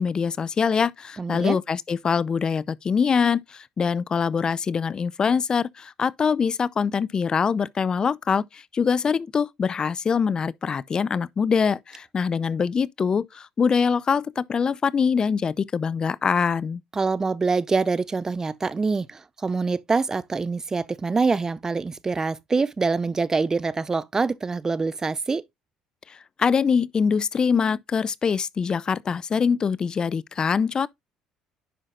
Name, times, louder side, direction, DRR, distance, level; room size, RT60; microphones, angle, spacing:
voice 1, 0.0-16.8 26.1-30.9, left 6 dB, 35° left, 0.5 m, -24 dB
voice 2, 1.2-1.6 16.9-25.4, right 4 dB, 25° right, 0.5 m, -25 dB
10.0 x 5.6 x 2.4 m
supercardioid pair, 80°, 2 cm